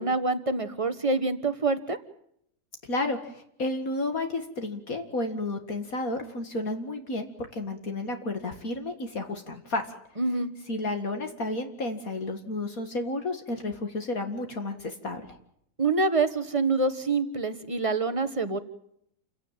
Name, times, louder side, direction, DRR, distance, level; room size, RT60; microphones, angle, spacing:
voice 1, 0.0-2.0 10.2-10.5 15.8-18.6, right 3 dB, 20° right, 11 dB, 1.5 m, -26 dB
voice 2, 2.9-9.9 10.7-15.4, left 2 dB, 60° left, 5 dB, 2.5 m, -32 dB
29.0 x 16.5 x 9.1 m, 0.72 s
omnidirectional pair, 1.7 m